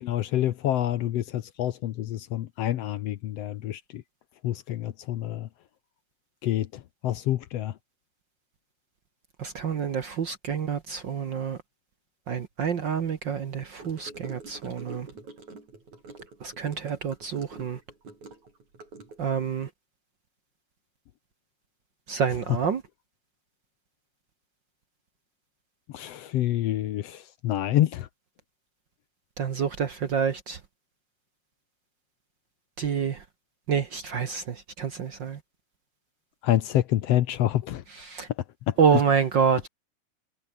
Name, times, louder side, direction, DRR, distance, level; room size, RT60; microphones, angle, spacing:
voice 1, 0.0-4.0 4.4-5.5 6.4-7.7 25.9-28.1 36.4-37.8 38.7-38.8, left 13 dB, 65° left, 1.8 m, -27 dB
voice 2, 9.4-11.6 12.3-15.1 16.4-17.8 19.2-19.7 22.1-22.8 29.4-30.6 32.8-33.2 33.7-35.4 38.1-38.3 38.8-39.7, right 6 dB, 50° right, 1.5 m, -27 dB
Gurgling / Car passing by / Sink (filling or washing), 13.8-19.5, right 3 dB, 75° right, 8.7 m, -46 dB
omnidirectional pair, 3.3 m